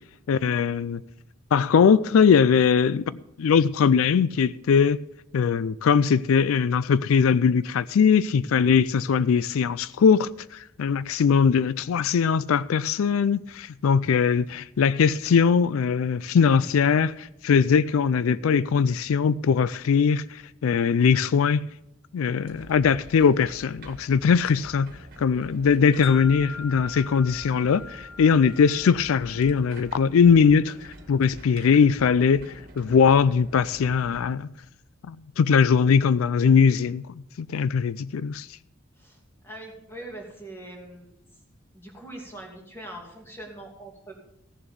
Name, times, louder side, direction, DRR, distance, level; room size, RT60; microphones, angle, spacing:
voice 1, 0.3-1.0 1.5-5.0 5.3-21.7 22.1-34.5 35.1-38.5, left 6 dB, 85° left, 0.4 m, -21 dB
sound 1, 22.4-34.3, right 1 dB, 45° right, 1.7 m, -47 dB
Wind chime, 26.0-30.3, left 5 dB, 55° left, 1.1 m, -42 dB
voice 2, 39.0-41.1 41.7-44.2, right 1 dB, 10° left, 2.6 m, -42 dB
15.5 x 7.1 x 6.8 m
head